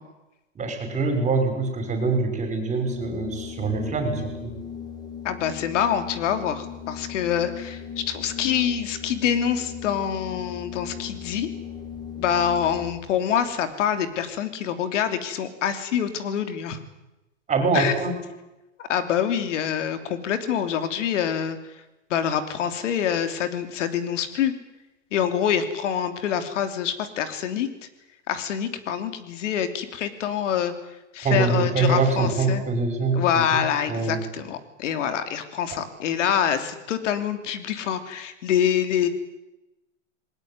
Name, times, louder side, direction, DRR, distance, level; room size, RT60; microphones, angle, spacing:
voice 1, 0.6-4.5 17.5-18.1 31.2-33.6 33.9-34.2, right 3 dB, 20° right, 6 dB, 6.2 m, -24 dB
Organ, 2.8-13.0, left 7 dB, 10° left, 4.0 m, -38 dB
voice 2, 5.2-7.8 8.1-11.5 12.2-16.8 17.7-17.9 18.8-21.6 22.1-24.5 25.1-27.7 28.3-30.7 31.1-32.6 33.1-39.1, left 9 dB, 70° left, 9 dB, 3.2 m, -25 dB
21.0 x 19.0 x 9.7 m, 0.98 s
hypercardioid pair, 130°, 38 cm